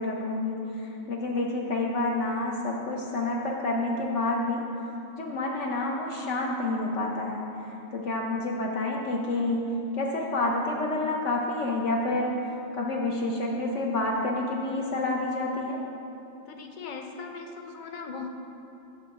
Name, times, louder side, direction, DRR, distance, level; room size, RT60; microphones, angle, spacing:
voice 1, 0.0-4.6 5.2-12.3 12.7-15.8, left 2 dB, 65° left, -1 dB, 1.0 m, -29 dB
voice 2, 16.5-18.3, left 5 dB, 50° left, 3 dB, 0.6 m, -39 dB
9.4 x 3.8 x 6.9 m, 2.9 s
omnidirectional pair, 1.4 m